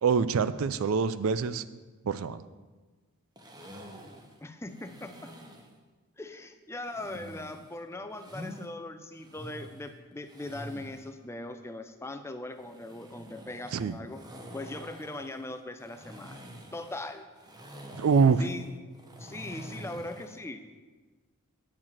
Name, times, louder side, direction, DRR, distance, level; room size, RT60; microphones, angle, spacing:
voice 1, 0.0-1.6 2.1-2.4 13.7-14.0 17.9-18.4, right 5 dB, 70° right, 14 dB, 0.4 m, -25 dB
sound 1, 3.4-5.8 6.8-8.7 9.1-11.1 12.5-20.4, equal, 15° right, 0.8 m, -47 dB
voice 2, 4.4-5.3 6.2-14.2 14.5-16.4 16.7-17.3 18.4-18.7 19.2-20.6, left 2 dB, 10° left, 8 dB, 0.4 m, -40 dB
9.4 x 4.9 x 7.2 m, 1.3 s
head